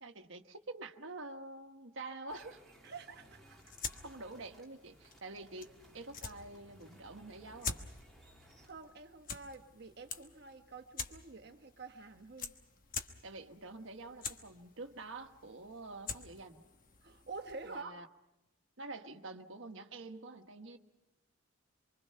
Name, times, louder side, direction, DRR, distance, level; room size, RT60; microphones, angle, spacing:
voice 1, 0.0-2.6 4.0-5.7 5.9-7.8 13.2-16.6 17.6-18.1 18.8-20.8, right 2 dB, 70° right, 6 dB, 1.3 m, -47 dB
sound 1, 2.3-8.7, equal, ahead, 3.1 m, -61 dB
voice 2, 2.8-3.7 8.6-12.5 17.0-18.1, right 4 dB, 50° right, 6 dB, 1.2 m, -48 dB
sound 2, 3.4-17.8, left 5 dB, 40° left, 1.1 m, -47 dB
25.5 x 24.5 x 5.7 m, 0.94 s
head